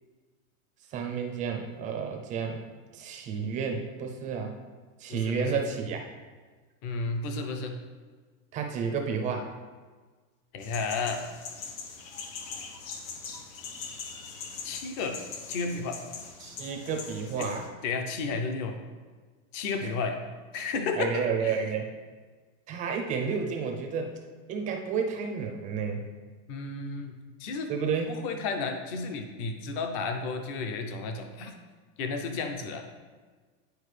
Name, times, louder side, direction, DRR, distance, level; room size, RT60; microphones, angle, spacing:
voice 1, 0.9-2.6 2.9-4.5 5.0-6.0 8.5-9.5 16.4-17.7 19.8-19.9 21.0-21.9 22.7-24.1 24.5-26.0 27.7-28.2, right 6 dB, 20° right, 3 dB, 0.4 m, -31 dB
voice 2, 5.1-5.6 6.8-7.8 10.5-11.2 14.6-15.2 15.5-16.0 17.4-17.5 17.8-18.8 19.5-20.2 20.5-21.7 26.5-27.1 27.4-27.7 28.1-31.5 32.0-32.8, left 4 dB, 40° left, 5 dB, 0.7 m, -32 dB
sound 1, 10.6-17.7, left 5 dB, 85° left, 1.1 m, -41 dB
9.5 x 4.6 x 3.2 m, 1.4 s
supercardioid pair, 160°, 39 cm